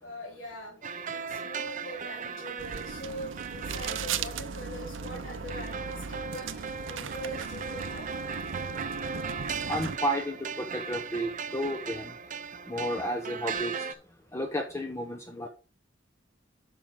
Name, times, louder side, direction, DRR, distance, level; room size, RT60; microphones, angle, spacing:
voice 1, 0.0-0.8 1.1-8.1, equal, 85° left, -2 dB, 2.9 m, -42 dB
sound 1, 0.8-13.9, right 5 dB, 45° right, 0.6 m, -38 dB
sound 2, 2.6-10.0, right 6 dB, 85° right, 0.6 m, -37 dB
sound 3, 6.8-13.7, right 2 dB, 45° left, 1.4 m, -66 dB
voice 2, 9.7-12.1 12.7-13.9 14.3-15.5, equal, 15° left, 3 dB, 0.7 m, -32 dB
8.8 x 6.2 x 3.7 m, 0.33 s
head